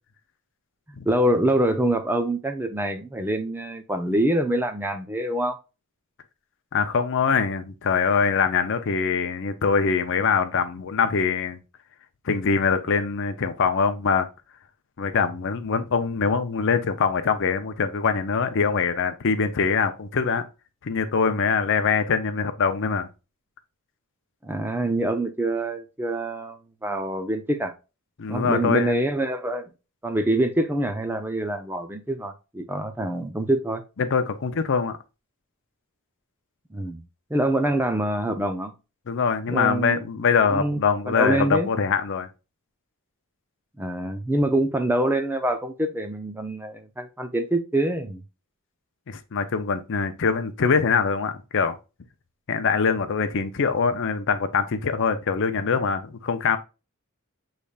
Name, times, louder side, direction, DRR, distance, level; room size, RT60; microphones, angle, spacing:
voice 1, 1.0-5.6 24.4-27.7 28.3-29.7 30.0-33.8 36.7-37.0 37.3-38.7 39.5-40.0 40.4-40.8 41.1-41.7 43.8-48.2, right 1 dB, 10° right, 0.5 m, -25 dB
voice 2, 6.7-11.6 12.2-14.3 15.0-20.4 20.8-23.1 28.2-29.0 34.0-35.0 39.1-42.3 49.1-51.8 52.5-56.6, left 5 dB, 55° left, 0.6 m, -23 dB
6.8 x 3.2 x 2.3 m
head